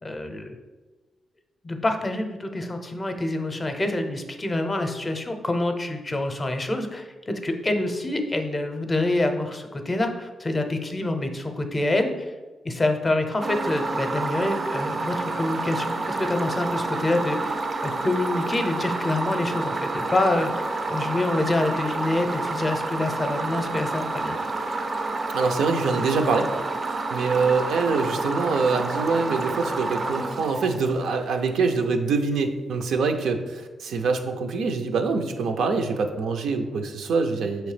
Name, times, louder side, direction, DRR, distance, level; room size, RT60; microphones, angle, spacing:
voice 1, 0.0-0.6 1.6-12.3 12.6-24.4, left 2 dB, 20° left, 6 dB, 0.6 m, -26 dB
sound 1, 13.4-31.4, right 3 dB, 35° right, 0.4 m, -29 dB
voice 2, 25.3-26.5 27.1-37.7, right 4 dB, 85° right, 6 dB, 0.6 m, -24 dB
6.3 x 3.0 x 4.9 m, 1.2 s
wide cardioid pair, 135°, 0 cm